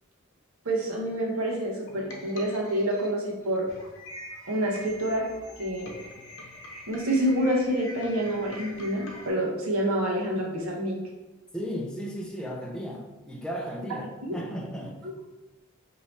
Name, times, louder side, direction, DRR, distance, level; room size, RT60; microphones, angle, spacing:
voice 1, 0.6-3.7 4.5-5.2 5.6-5.9 6.9-11.0 14.2-14.4 15.0-15.2, right 1 dB, 70° right, -2 dB, 1.0 m, -27 dB
sound 1, 0.9-9.3, left 1 dB, 65° left, 0.7 m, -45 dB
voice 2, 11.5-15.0, equal, 5° left, -1 dB, 0.4 m, -35 dB
2.8 x 2.8 x 4.4 m, 1.1 s
head